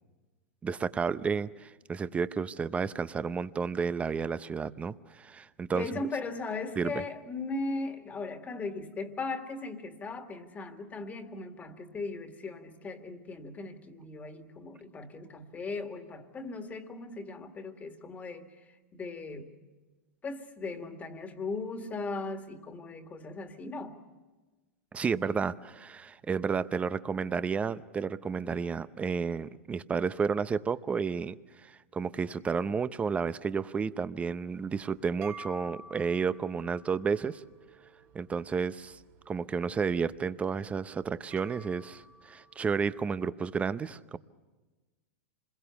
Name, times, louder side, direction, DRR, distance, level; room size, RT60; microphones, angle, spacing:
voice 1, 0.6-5.9 6.8-7.0 24.9-37.4 38.1-39.0 39.3-44.2, right 5 dB, 15° right, 15 dB, 0.7 m, -31 dB
voice 2, 5.7-18.6 18.9-19.5 20.2-24.0, left 3 dB, 20° left, 6 dB, 2.0 m, -38 dB
sound 1, 34.6-43.1, right 2 dB, 60° right, 3.9 m, -52 dB
27.0 x 21.5 x 7.0 m, 1.2 s
hypercardioid pair, 120°, 7 cm